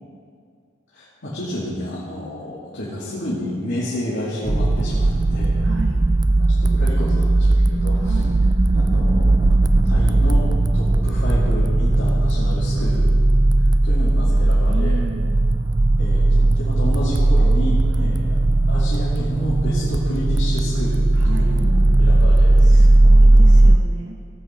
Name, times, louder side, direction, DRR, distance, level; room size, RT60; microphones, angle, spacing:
voice 1, 0.9-5.6 6.6-8.2 8.7-9.6 9.8-10.5 10.7-13.1 13.6-15.0 16.0-18.4 18.7-22.8, left 1 dB, 75° left, -9 dB, 2.4 m, -30 dB
sound 1, 4.5-23.8, right 2 dB, 20° right, 0.3 m, -16 dB
voice 2, 5.6-6.0 7.9-8.3 14.7-15.4 18.0-18.2 21.1-21.6 22.6-24.4, right 3 dB, 75° right, 1 dB, 0.9 m, -34 dB
17.0 x 8.2 x 4.4 m, 2.2 s
head